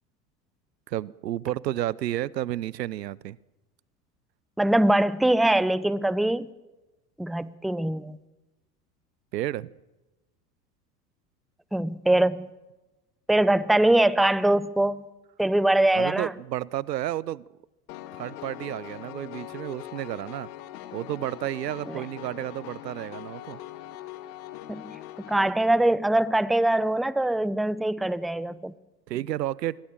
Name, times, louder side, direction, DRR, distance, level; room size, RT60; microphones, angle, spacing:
voice 1, 0.9-3.4 9.3-9.7 15.9-17.4 18.1-20.5 20.9-23.6 29.1-29.8, right 13 dB, 80° right, 23 dB, 0.8 m, -31 dB
voice 2, 4.6-6.5 7.2-8.2 11.7-12.5 13.3-15.0 15.4-16.3 21.9-22.0 24.7-24.8 25.3-28.7, right 1 dB, ahead, 18 dB, 0.7 m, -23 dB
Piano, 17.9-25.5, left 13 dB, 60° left, 2.1 m, -42 dB
26.0 x 22.0 x 7.4 m, 1.1 s
hypercardioid pair, 80°, 49 cm